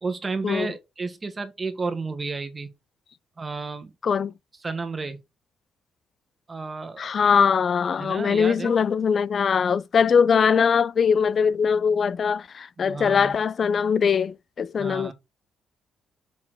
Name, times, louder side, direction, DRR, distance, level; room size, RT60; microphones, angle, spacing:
voice 1, 0.0-2.7 3.4-3.9 4.6-5.2 6.5-7.1 8.0-8.8 12.8-13.4 14.8-15.1, right 4 dB, 25° right, 1.6 m, -32 dB
voice 2, 4.0-4.3 7.0-15.1, left 6 dB, 50° left, 0.4 m, -21 dB
6.0 x 4.2 x 6.2 m
cardioid pair, 90°, 0 cm